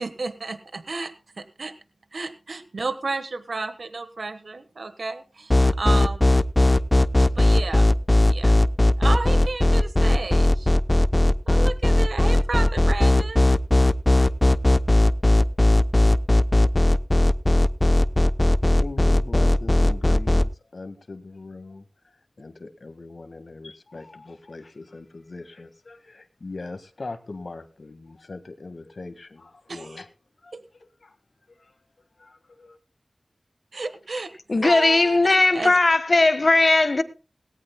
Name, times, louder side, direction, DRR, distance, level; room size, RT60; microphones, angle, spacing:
voice 1, 0.0-1.7 2.1-6.3 7.2-7.9 8.3-8.6 9.0-10.7 11.4-13.4 29.7-30.0 30.5-30.6 33.7-34.3 34.6-35.7, right 3 dB, 90° right, 1.2 m, -32 dB
sound 1, 5.5-20.4, left 1 dB, 25° left, 0.6 m, -17 dB
voice 2, 18.7-30.1 30.4-31.2 31.5-31.7 32.2-32.8, left 3 dB, 70° left, 1.7 m, -40 dB
voice 3, 34.5-37.0, left 2 dB, 55° left, 1.4 m, -18 dB
18.5 x 17.5 x 2.2 m
wide cardioid pair, 70°, 0 cm